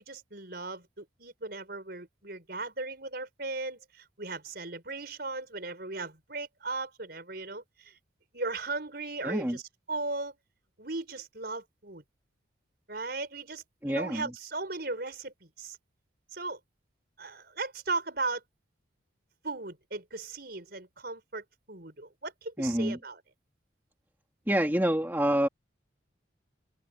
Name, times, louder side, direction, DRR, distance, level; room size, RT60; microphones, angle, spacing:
voice 1, 0.0-8.0 8.3-9.6 9.9-10.4 10.8-12.0 12.9-15.8 16.3-16.6 17.2-18.4 19.4-23.2, right 3 dB, 50° right, 5.6 m, -37 dB
voice 2, 9.2-9.6 13.8-14.3 22.6-23.0 24.5-25.5, equal, 10° right, 2.1 m, -27 dB
open air
head